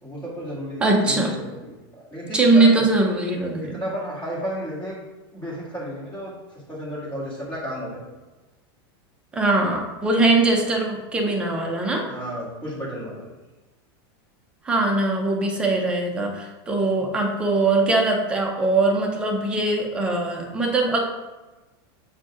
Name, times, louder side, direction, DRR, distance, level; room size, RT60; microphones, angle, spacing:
voice 1, 0.0-2.8 3.6-4.9 5.3-8.0 12.1-13.3 17.0-17.2, equal, 10° left, -8 dB, 2.0 m, -33 dB
voice 2, 0.8-1.3 2.3-3.7 9.3-12.0 14.6-21.0, right 2 dB, 10° right, 0 dB, 0.6 m, -21 dB
8.0 x 2.7 x 4.7 m, 1.2 s
supercardioid pair, 175°, 13 cm